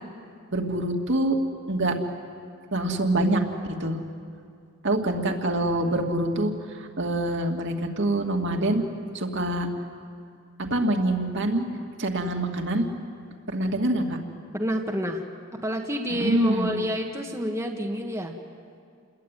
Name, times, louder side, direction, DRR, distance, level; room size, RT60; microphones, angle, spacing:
voice 1, 0.5-1.4 1.7-2.0 2.7-3.4 3.8-4.0 4.8-8.8 9.1-9.7 10.7-11.6 12.0-12.9 13.5-14.2 16.1-16.8, right 1 dB, 55° right, 2 dB, 2.6 m, -25 dB
voice 2, 14.5-15.2 15.6-18.3, equal, 15° right, 1 dB, 1.7 m, -29 dB
29.5 x 21.5 x 9.3 m, 2.3 s
head